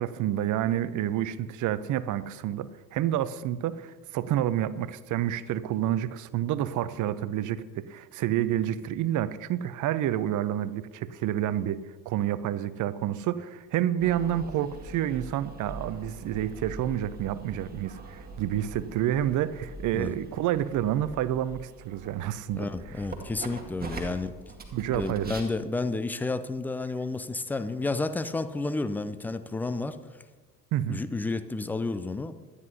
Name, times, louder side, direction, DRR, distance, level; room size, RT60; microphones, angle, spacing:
voice 1, 0.0-22.6 23.8-23.9 24.7-25.3 30.7-31.0, right 11 dB, 40° right, 16 dB, 0.8 m, -29 dB
sound 1, 14.0-25.4, right 3 dB, 20° right, 2.0 m, -43 dB
voice 2, 22.6-24.3 24.9-30.0 30.9-32.3, left 3 dB, 5° left, 12 dB, 0.3 m, -31 dB
24.0 x 9.8 x 2.8 m, 1.3 s
figure-of-eight pair, 65°, 49 cm